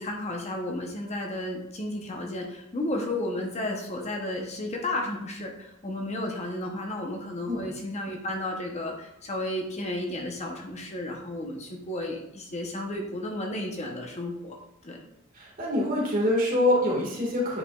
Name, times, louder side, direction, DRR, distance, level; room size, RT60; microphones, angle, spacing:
voice 1, 0.0-14.6 14.8-15.0, left 1 dB, 30° left, 1 dB, 0.9 m, -33 dB
voice 2, 15.3-17.6, left 1 dB, 40° right, -3 dB, 1.8 m, -25 dB
8.7 x 4.8 x 2.4 m, 0.80 s
head